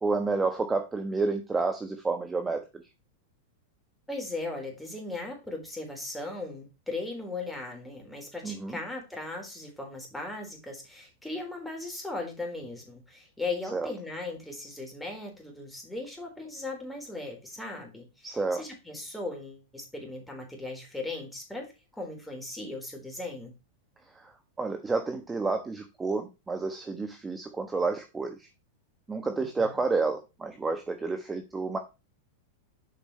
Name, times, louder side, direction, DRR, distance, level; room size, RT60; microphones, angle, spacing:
voice 1, 0.0-2.8 8.4-8.8 13.7-13.9 18.2-18.6 24.1-28.5 29.1-31.8, right 3 dB, 15° right, 6 dB, 1.1 m, -30 dB
voice 2, 4.1-23.5 29.4-29.8, left 2 dB, 5° left, 1 dB, 3.8 m, -38 dB
7.6 x 5.3 x 4.3 m, 0.27 s
hypercardioid pair, 110°, 0 cm